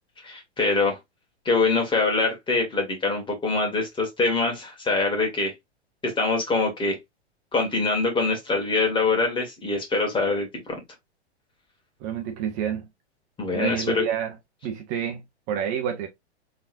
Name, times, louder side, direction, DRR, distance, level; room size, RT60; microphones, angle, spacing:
voice 1, 0.2-1.0 1.5-5.5 6.0-7.0 7.5-10.5 13.4-14.0, left 3 dB, 15° left, 2.0 m, -24 dB
voice 2, 12.0-12.9 13.5-14.3 14.6-16.1, right 9 dB, 35° right, 1.0 m, -29 dB
4.0 x 3.8 x 2.6 m
hypercardioid pair, 115°, 34 cm